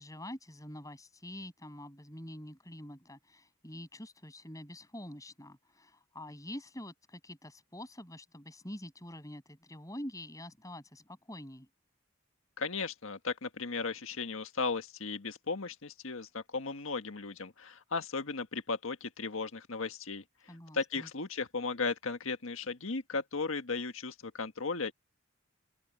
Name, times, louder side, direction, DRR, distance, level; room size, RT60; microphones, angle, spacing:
voice 1, 0.0-11.7 20.5-21.1, left 1 dB, 15° left, 7.8 m, -46 dB
voice 2, 12.6-24.9, left 4 dB, 80° left, 1.6 m, -36 dB
open air
head